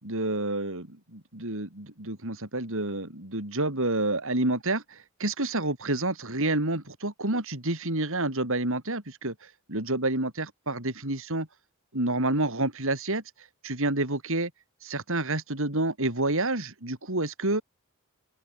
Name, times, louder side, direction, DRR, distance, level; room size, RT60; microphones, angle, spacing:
voice 1, 0.0-11.5 11.9-13.2 13.6-14.5 14.8-17.6, right 2 dB, 65° right, 5.4 m, -29 dB
open air
head